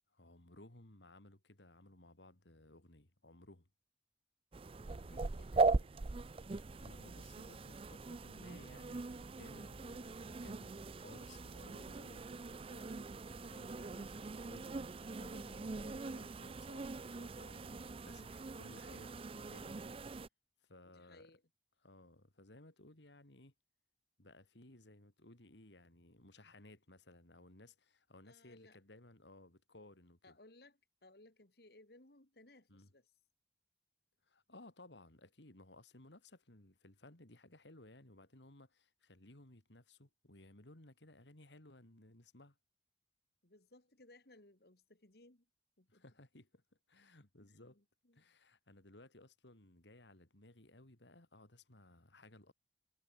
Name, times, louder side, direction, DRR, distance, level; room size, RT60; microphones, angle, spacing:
voice 1, 0.1-3.7 6.8-19.8 20.6-21.3 21.8-23.5 24.2-30.4 32.7-32.9 34.2-42.6 45.9-46.6 46.9-47.8 48.1-52.5, left 2 dB, 80° left, 3.0 m, -60 dB
sound 1, 4.5-20.3, right 3 dB, 30° right, 0.5 m, -40 dB
voice 2, 4.9-5.9 20.8-21.4 28.2-28.8 30.2-33.1 43.4-45.5 45.8-46.0 47.4-48.2, left 2 dB, 60° left, 2.6 m, -63 dB
head